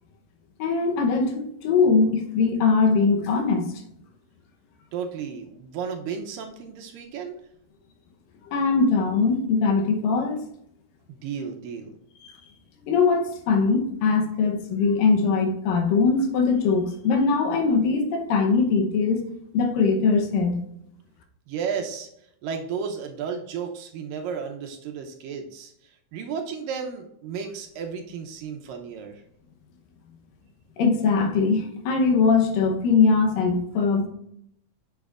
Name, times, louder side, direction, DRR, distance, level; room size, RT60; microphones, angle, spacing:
voice 1, 0.6-3.7 8.5-10.4 12.2-12.3 12.9-19.2 19.5-20.6 30.8-34.1, left 4 dB, 75° left, 3 dB, 2.5 m, -21 dB
voice 2, 4.9-7.4 11.1-12.0 21.5-22.1 22.4-25.7 26.1-29.2, right 6 dB, 80° right, 4 dB, 2.3 m, -33 dB
8.1 x 7.1 x 2.4 m, 0.75 s
omnidirectional pair, 4.2 m